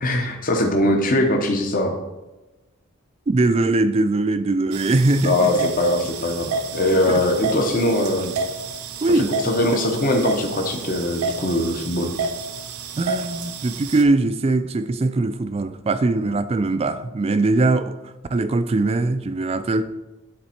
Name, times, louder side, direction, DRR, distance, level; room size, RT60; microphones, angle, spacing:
voice 1, 0.0-2.0 5.2-8.3 9.2-12.1, left 1 dB, 40° left, 2 dB, 0.7 m, -21 dB
voice 2, 3.3-5.7 7.1-7.2 9.0-9.8 13.0-19.8, right 2 dB, 25° right, 11 dB, 0.3 m, -21 dB
sound 1, 4.7-14.0, right 4 dB, 80° right, 0.7 m, -30 dB
9.7 x 4.2 x 4.3 m, 1.1 s
head